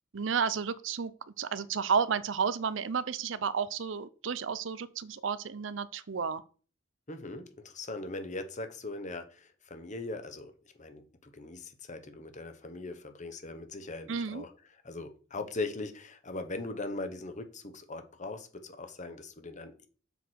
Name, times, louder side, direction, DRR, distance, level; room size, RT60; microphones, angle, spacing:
voice 1, 0.1-1.1 1.4-6.4 14.1-14.4, right 6 dB, 75° right, 0.6 m, -32 dB
voice 2, 7.1-10.5 10.8-14.5 14.8-19.8, left 2 dB, 40° left, 1.1 m, -40 dB
7.1 x 6.1 x 4.7 m
head